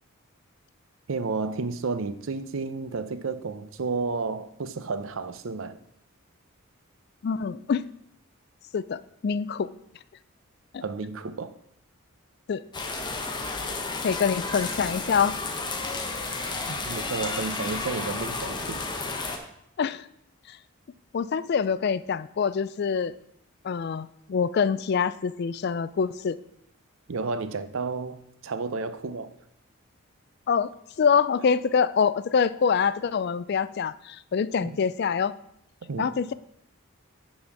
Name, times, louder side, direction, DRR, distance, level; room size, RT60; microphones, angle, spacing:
voice 1, 1.1-5.8 10.8-11.6 16.7-18.8 27.1-29.3 34.6-34.8 35.9-36.1, right 4 dB, 65° right, 0.6 m, -32 dB
voice 2, 7.2-7.9 8.7-9.7 10.7-10.8 12.5-12.6 14.0-15.4 19.8-20.1 20.5-20.6 21.1-23.2 23.6-26.4 30.5-30.7 31.0-35.3 36.0-36.3, left 6 dB, 50° left, 0.3 m, -25 dB
sound 1, 12.7-19.4, left 3 dB, 20° left, 0.8 m, -32 dB
9.6 x 4.2 x 5.9 m
head